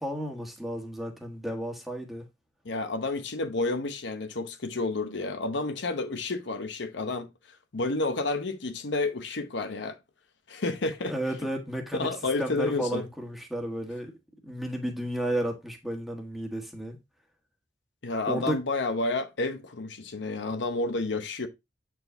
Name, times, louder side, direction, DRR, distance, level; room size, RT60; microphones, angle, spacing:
voice 1, 0.0-2.2 11.1-14.1 14.4-17.0 18.3-18.6, right 1 dB, ahead, 1.4 m, -33 dB
voice 2, 2.6-7.3 7.7-10.0 10.5-11.1 11.9-13.0 18.0-21.5, left 3 dB, 70° left, 0.9 m, -30 dB
8.0 x 4.7 x 2.6 m
head